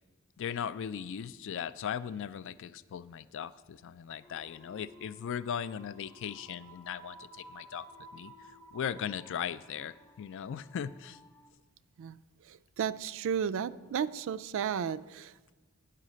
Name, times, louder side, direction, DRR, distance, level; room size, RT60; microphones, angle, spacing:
voice 1, 0.4-7.9 8.1-11.2, left 8 dB, 60° left, 15 dB, 0.3 m, -38 dB
sound 1, 4.2-11.5, right 2 dB, 15° left, 0.6 m, -55 dB
voice 2, 12.0-15.5, right 8 dB, 65° right, 16 dB, 0.3 m, -34 dB
9.9 x 5.7 x 6.3 m, 1.2 s
head